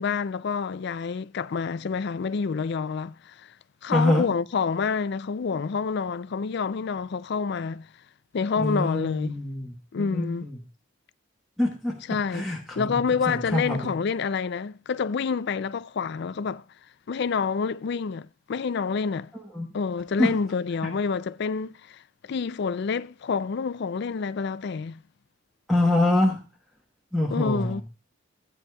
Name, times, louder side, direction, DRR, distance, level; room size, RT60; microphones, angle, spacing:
voice 1, 0.0-3.5 3.8-7.9 8.3-9.4 9.9-10.5 12.1-12.5 12.7-16.6 17.1-19.3 19.7-25.0 27.3-27.8, left 5 dB, 55° left, 0.4 m, -28 dB
voice 2, 3.9-4.3 8.6-10.6 11.6-11.9 12.3-13.0 13.3-13.9 19.3-19.7 20.2-20.3 20.8-20.9 25.7-26.4 27.1-27.8, left 1 dB, ahead, 1.2 m, -25 dB
15.0 x 9.1 x 2.3 m
head